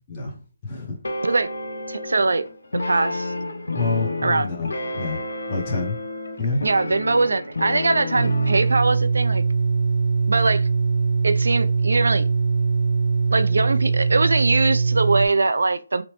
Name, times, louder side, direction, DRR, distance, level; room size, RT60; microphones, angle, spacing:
voice 1, 0.1-1.0 3.7-4.7 4.9-5.2 5.5-6.0 6.4-6.6, left 3 dB, 15° left, 0.6 m, -27 dB
sound 1, 1.0-8.8, left 2 dB, 75° left, 0.6 m, -30 dB
voice 2, 1.9-2.5 2.7-3.3 4.2-4.5 6.6-9.4 10.3-10.7 11.2-12.3 13.3-16.0, right 3 dB, 85° right, 0.3 m, -21 dB
sound 2, 8.1-15.3, right 4 dB, 70° right, 0.8 m, -21 dB
2.9 x 2.0 x 3.0 m
hypercardioid pair, 180°, 0 cm